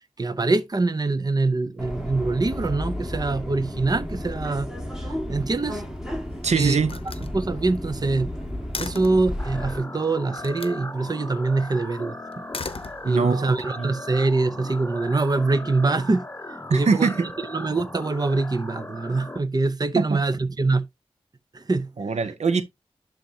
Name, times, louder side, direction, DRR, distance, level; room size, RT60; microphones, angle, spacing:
voice 1, 0.2-4.7 5.0-5.8 6.5-6.8 7.3-8.3 8.8-12.2 13.0-16.2 16.7-17.1 17.5-20.9 21.5-21.9, right 3 dB, 35° right, 0.7 m, -24 dB
Subway metro underground, 1.8-9.8, left 1 dB, 5° right, 2.0 m, -33 dB
Slam, 5.8-6.4 6.8-9.3 10.4-10.8 12.3-13.5, left 4 dB, 55° left, 0.8 m, -37 dB
voice 2, 6.4-7.0 13.0-13.9 16.7-17.3 19.9-20.2 22.0-22.6, right 4 dB, 85° right, 0.8 m, -22 dB
sound 1, 9.4-19.4, left 1 dB, 20° left, 0.8 m, -38 dB
11.5 x 3.9 x 2.8 m
wide cardioid pair, 60°, 11 cm